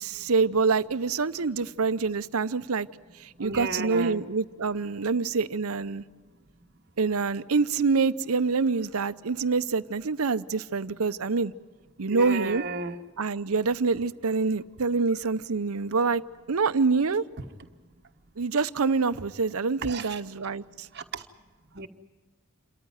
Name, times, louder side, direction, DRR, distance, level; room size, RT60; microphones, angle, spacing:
voice 1, 0.0-2.9 3.2-6.0 7.0-11.5 12.0-12.6 13.2-16.2 16.5-17.2 18.4-20.9, right 4 dB, 85° right, 14 dB, 0.7 m, -26 dB
voice 2, 3.4-4.2 12.1-13.0 19.8-20.2 20.9-21.2 21.7-21.9, right 3 dB, 50° right, 6 dB, 1.2 m, -33 dB
27.5 x 14.0 x 9.5 m, 1.4 s
head